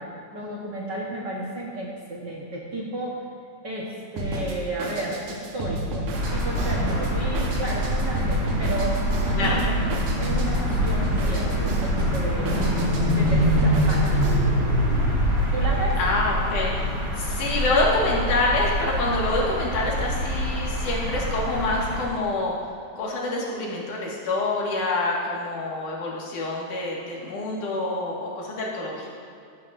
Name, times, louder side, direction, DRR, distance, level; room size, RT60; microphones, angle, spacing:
voice 1, 0.0-3.2 3.6-9.0 9.4-9.8 10.2-12.5 13.0-14.3 15.5-16.0, right 1 dB, 50° right, -4 dB, 1.4 m, -32 dB
Drum kit, 4.2-14.4, right 1 dB, 90° right, 2.7 m, -32 dB
sound 1, 6.1-22.0, equal, 25° right, 2.5 m, -24 dB
voice 2, 16.0-16.9 17.2-22.6 23.0-29.1, left 2 dB, 90° left, -3 dB, 3.3 m, -26 dB
14.0 x 12.5 x 2.6 m, 2.4 s
omnidirectional pair, 3.5 m